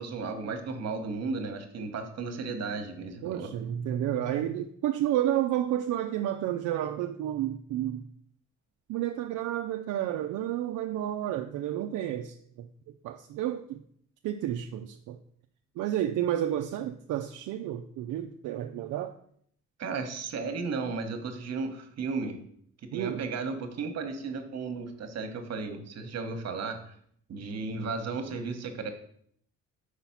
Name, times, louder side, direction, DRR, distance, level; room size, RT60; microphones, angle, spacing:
voice 1, 0.0-3.5 19.8-22.4 22.9-26.9 27.3-28.9, right 4 dB, 60° right, 1.1 m, -34 dB
voice 2, 3.2-8.1 8.9-12.7 13.0-13.8 14.2-15.2 15.8-19.1 22.9-23.2, right 12 dB, 80° right, 0.5 m, -31 dB
5.0 x 4.0 x 5.8 m
cardioid pair, 90°, 30 cm